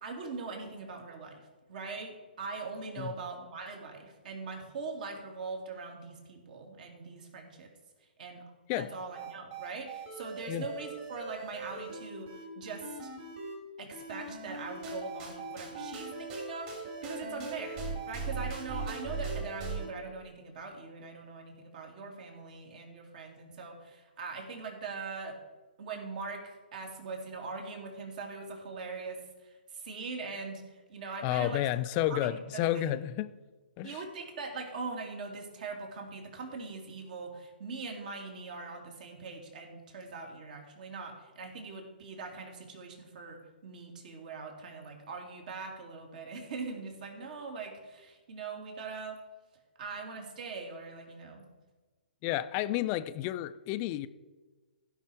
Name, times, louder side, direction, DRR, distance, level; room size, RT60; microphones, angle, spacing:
voice 1, 0.0-7.7 8.2-13.1 13.8-16.7 17.0-25.4 25.8-31.7 32.1-32.8 33.8-49.2 49.8-51.4, right 4 dB, 55° right, 2.7 m, -42 dB
sound 1, 9.1-13.6 13.9-19.9, right 3 dB, 35° right, 2.8 m, -40 dB
voice 2, 31.2-33.3 33.8-34.0 52.2-54.1, left 13 dB, 30° left, 0.5 m, -31 dB
15.5 x 5.7 x 5.0 m
hypercardioid pair, 130°, 6 cm